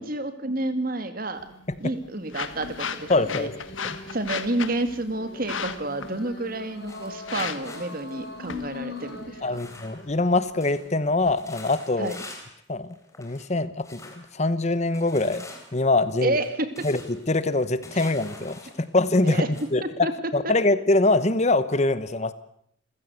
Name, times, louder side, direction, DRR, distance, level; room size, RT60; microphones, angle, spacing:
voice 1, 0.0-1.4 1.8-3.5 4.1-9.6 12.0-12.2 16.2-16.7 17.9-18.1 19.2-19.5 20.0-20.1, right 2 dB, 45° right, 10 dB, 2.3 m, -29 dB
sound 1, 1.3-11.3, left 6 dB, 80° left, 1.7 m, -38 dB
sound 2, 2.3-9.7, left 3 dB, 55° left, 3.6 m, -42 dB
voice 2, 3.1-3.6 3.8-4.0 9.4-12.1 12.7-15.5 15.7-16.4 16.8-19.4 19.7-22.3, left 2 dB, 35° left, 14 dB, 1.0 m, -24 dB
sound 3, 6.8-10.3 10.6-10.9 11.2-12.6 12.9-13.5 13.8-14.3 14.9-19.7, left 2 dB, 15° left, 4.0 m, -46 dB
28.0 x 15.5 x 8.0 m, 0.69 s
head